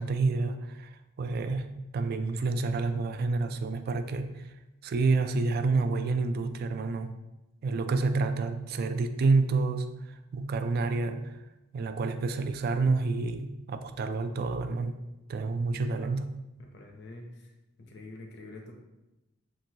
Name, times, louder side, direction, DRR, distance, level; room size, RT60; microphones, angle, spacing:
voice 1, 0.0-4.6 4.8-7.2 7.6-11.4 11.7-15.0 15.3-16.3, right 3 dB, 50° right, 9 dB, 0.3 m, -29 dB
voice 2, 15.7-16.2 16.7-17.5 17.8-18.7, left 2 dB, 60° left, 2 dB, 0.7 m, -46 dB
7.4 x 2.6 x 2.7 m, 0.99 s
head